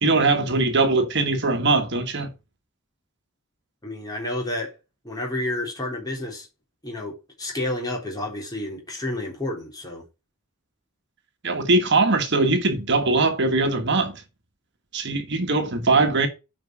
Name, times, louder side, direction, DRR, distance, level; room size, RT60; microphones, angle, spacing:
voice 1, 0.0-2.3 11.4-14.2 14.9-16.3, right 3 dB, 55° right, 1.6 m, -21 dB
voice 2, 3.8-4.8 5.0-6.5 6.8-10.0, left 1 dB, 20° left, 3.6 m, -30 dB
9.2 x 5.4 x 6.1 m
head